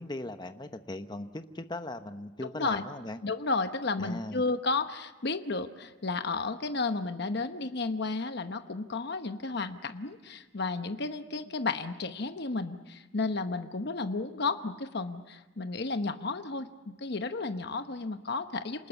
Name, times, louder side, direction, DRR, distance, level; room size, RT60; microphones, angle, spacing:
voice 1, 0.0-3.2 4.0-4.4, left 2 dB, 25° left, 8 dB, 0.9 m, -38 dB
voice 2, 3.2-18.9, left 3 dB, 60° left, 8 dB, 1.0 m, -32 dB
27.5 x 19.5 x 8.1 m, 1.1 s
head